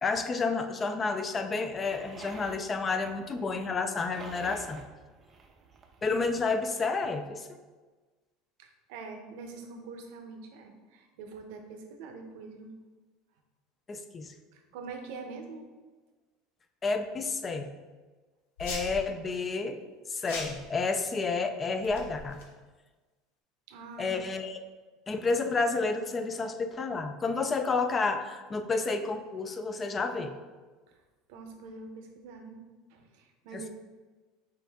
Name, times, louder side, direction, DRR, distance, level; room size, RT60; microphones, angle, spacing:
voice 1, 0.0-4.8 6.0-7.5 13.9-14.3 16.8-17.7 18.6-19.7 20.1-22.4 24.0-24.6 25.1-30.3 33.5-33.7, left 4 dB, 25° left, 8 dB, 0.4 m, -30 dB
sound 1, 1.7-6.5, right 4 dB, 30° right, 0.5 m, -49 dB
voice 2, 8.6-12.7 14.5-15.7 23.7-24.2 30.9-31.0 31.3-33.7, right 4 dB, 75° right, 4 dB, 0.7 m, -44 dB
sound 2, 18.6-19.0 20.3-20.7 21.8-22.4, left 2 dB, 90° left, 0.9 m, -39 dB
5.4 x 2.6 x 3.5 m, 1.3 s
supercardioid pair, 130°, 0 cm